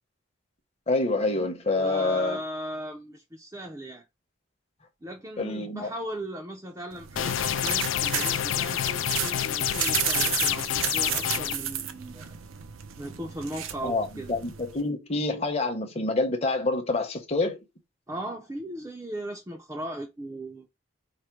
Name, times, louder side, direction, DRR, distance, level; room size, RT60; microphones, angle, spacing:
voice 1, 0.9-2.4 5.4-5.9 13.8-17.6, left 2 dB, 30° left, 0.9 m, -27 dB
voice 2, 1.7-4.0 5.0-12.3 13.0-14.3 18.1-20.7, right 1 dB, 15° right, 0.5 m, -38 dB
sound 1, 6.9-14.8, right 9 dB, 80° right, 0.6 m, -33 dB
sound 2, 7.2-11.5, left 11 dB, 70° left, 0.4 m, -28 dB
5.0 x 2.1 x 4.4 m
head